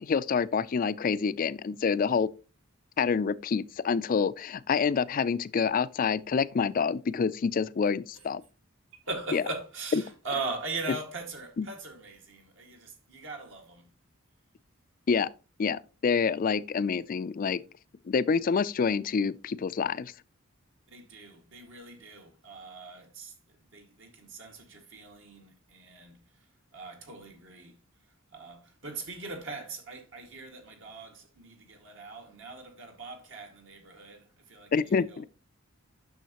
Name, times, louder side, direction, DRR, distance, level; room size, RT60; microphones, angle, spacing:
voice 1, 0.0-2.3 3.0-8.4 9.3-9.4 11.6-11.7 15.1-15.3 15.6-17.6 18.1-20.1 34.7-35.2, left 5 dB, 40° left, 0.3 m, -27 dB
voice 2, 9.0-13.9 20.9-23.4 23.7-35.3, right 3 dB, 65° right, 1.9 m, -41 dB
9.2 x 6.4 x 2.9 m
head